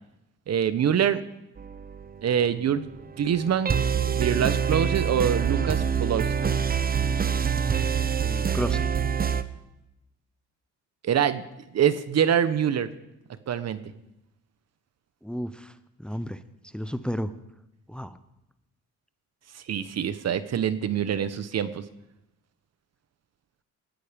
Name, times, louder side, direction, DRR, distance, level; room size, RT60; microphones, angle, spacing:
voice 1, 0.5-1.2 2.2-2.9 3.2-3.7 4.1-6.3 11.0-11.4 11.7-12.9 13.5-13.8 19.5-21.8, right 8 dB, 55° right, 13 dB, 1.2 m, -25 dB
sound 1, 1.6-2.3 2.8-9.4, right 7 dB, 30° right, 1.0 m, -26 dB
voice 2, 8.2-8.9 15.2-15.7 16.0-16.4 16.7-17.3 17.9-18.2, equal, 5° left, 13 dB, 0.8 m, -32 dB
20.0 x 13.5 x 5.3 m, 0.92 s
cardioid pair, 90°, 30 cm